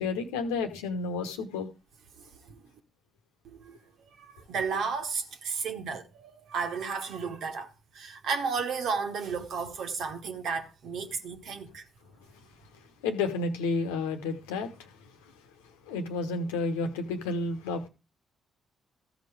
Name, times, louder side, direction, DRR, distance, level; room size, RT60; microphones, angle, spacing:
voice 1, 0.0-1.7 13.0-14.9 15.9-17.9, left 3 dB, 80° left, 1.2 m, -31 dB
voice 2, 3.4-11.8, right 5 dB, 60° right, 1.6 m, -33 dB
14.5 x 5.2 x 5.0 m
figure-of-eight pair, 40°, 0 cm